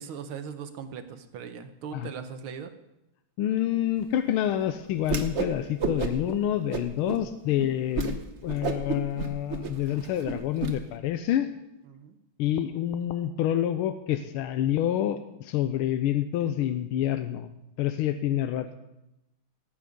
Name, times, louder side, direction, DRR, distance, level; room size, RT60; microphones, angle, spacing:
voice 1, 0.0-2.7 11.9-12.2, right 7 dB, 75° right, 9 dB, 1.8 m, -39 dB
voice 2, 3.4-11.5 12.4-17.5 17.8-18.7, left 11 dB, 90° left, 10 dB, 1.5 m, -27 dB
Whoosh swoosh swish, 5.0-5.5 5.8-6.3 6.7-7.2 7.6-7.7 7.9-8.1 8.5-10.7, right 5 dB, 45° right, 1.0 m, -30 dB
17.5 x 8.5 x 5.2 m, 0.90 s
omnidirectional pair, 2.3 m